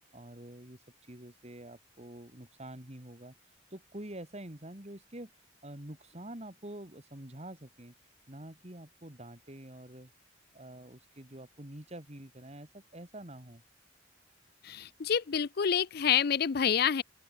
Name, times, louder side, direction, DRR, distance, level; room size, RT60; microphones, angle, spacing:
voice 1, 0.1-0.8 1.1-3.3 3.7-5.3 5.6-7.9 8.3-10.1 10.5-13.6, right 1 dB, 35° right, 2.6 m, -46 dB
voice 2, 14.6-17.0, left 8 dB, 55° left, 0.5 m, -28 dB
open air
head